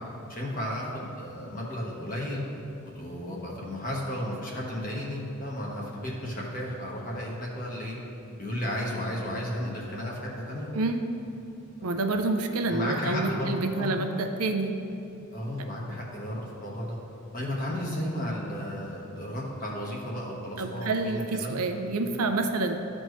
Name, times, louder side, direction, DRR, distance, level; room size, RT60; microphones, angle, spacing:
voice 1, 0.3-2.4 2.9-8.0 8.4-10.7 11.8-11.9 12.7-14.0 15.3-17.0 17.3-21.5 22.0-22.1, left 1 dB, 40° left, -3 dB, 1.3 m, -33 dB
voice 2, 11.8-14.7 20.6-22.7, right 3 dB, 80° right, 5 dB, 0.6 m, -28 dB
13.0 x 4.4 x 3.2 m, 2.8 s
head